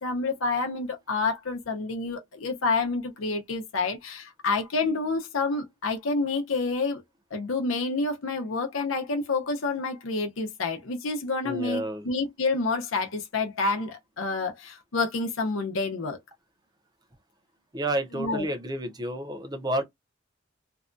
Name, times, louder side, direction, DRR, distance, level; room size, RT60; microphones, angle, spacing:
voice 1, 0.0-7.0 7.3-16.2 18.1-18.5, left 3 dB, 90° left, 0.7 m, -28 dB
voice 2, 11.4-12.1 17.7-19.8, right 1 dB, 20° right, 0.6 m, -30 dB
2.7 x 2.2 x 2.5 m
head